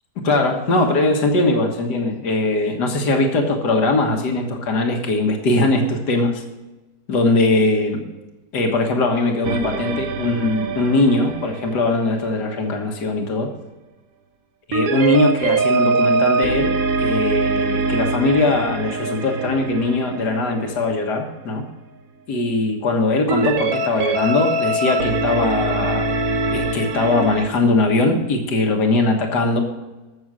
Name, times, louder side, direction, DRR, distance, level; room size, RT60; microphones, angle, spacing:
voice 1, 0.2-6.4 7.1-8.0 8.5-13.5 14.7-16.7 17.0-21.7 22.3-26.1 26.5-29.6, left 2 dB, 75° left, 3 dB, 2.1 m, -20 dB
sound 1, 9.4-12.8 14.7-21.2 23.3-27.5, right 3 dB, 60° right, 1.3 m, -23 dB
15.0 x 6.5 x 6.3 m, 1.1 s
omnidirectional pair, 1.8 m